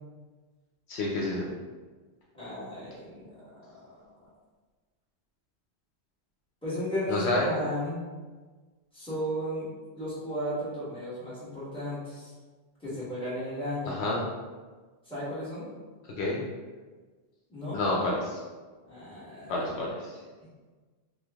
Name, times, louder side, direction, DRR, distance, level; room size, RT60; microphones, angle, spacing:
voice 1, 0.9-1.5 7.1-7.5 13.9-14.3 16.2-16.4 17.7-18.4 19.5-20.2, left 2 dB, 70° left, -3 dB, 0.9 m, -29 dB
voice 2, 2.3-3.8 6.6-8.0 8.9-9.7 9.9-12.3 12.8-13.9 15.0-15.7 17.5-17.8 18.8-19.7, equal, 5° left, -11 dB, 1.3 m, -34 dB
3.1 x 2.4 x 3.5 m, 1.4 s
omnidirectional pair, 1.2 m